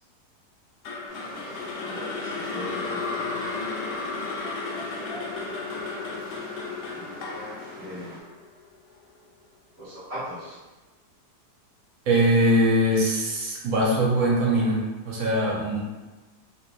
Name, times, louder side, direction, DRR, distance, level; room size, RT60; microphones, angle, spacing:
sound 1, 0.8-9.0, left 3 dB, 85° left, 1.2 m, -33 dB
sound 2, 1.1-8.2, equal, 5° right, 0.9 m, -44 dB
voice 1, 1.5-3.0 7.0-8.2 9.8-10.6, equal, 20° right, -10 dB, 1.2 m, -40 dB
voice 2, 12.1-15.8, right 1 dB, 60° right, -4 dB, 1.2 m, -22 dB
3.1 x 3.1 x 2.6 m, 1.2 s
omnidirectional pair, 1.8 m